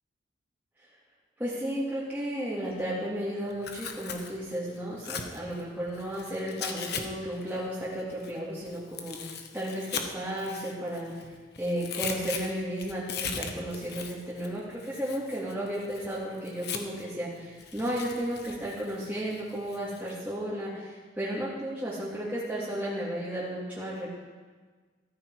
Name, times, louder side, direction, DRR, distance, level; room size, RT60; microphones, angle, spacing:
voice 1, 1.4-11.2 11.6-24.1, equal, 10° right, -9 dB, 2.5 m, -34 dB
Tearing, 3.5-7.0 7.3-11.3 11.6-17.1 17.6-20.1, left 6 dB, 60° left, 1.3 m, -39 dB
14.0 x 14.0 x 4.8 m, 1.4 s
head